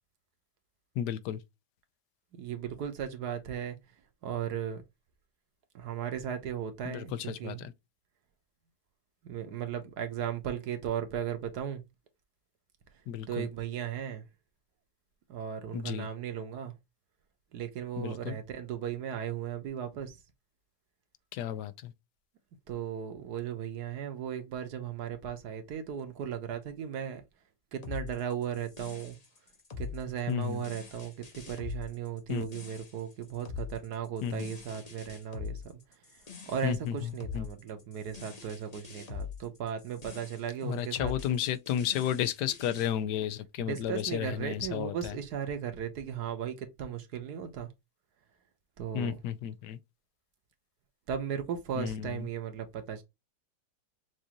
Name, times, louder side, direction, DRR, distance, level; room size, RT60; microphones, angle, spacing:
voice 1, 1.0-1.4 6.8-7.7 13.1-13.5 15.7-16.1 18.0-18.4 21.3-21.9 30.3-30.6 32.3-32.5 34.2-34.5 36.6-37.4 40.6-45.2 48.9-49.8 51.8-52.3, left 10 dB, 80° left, 1.2 m, -33 dB
voice 2, 2.3-3.8 4.2-4.8 5.7-7.7 9.2-11.8 13.3-14.2 15.3-16.7 17.5-20.2 22.7-27.2 27.7-29.2 29.8-35.8 36.4-41.1 43.6-47.7 48.8-49.2 51.1-53.0, right 8 dB, 70° right, 1.4 m, -36 dB
sound 1, 27.8-42.9, left 6 dB, 30° left, 0.8 m, -43 dB
6.2 x 2.6 x 2.8 m
omnidirectional pair, 1.8 m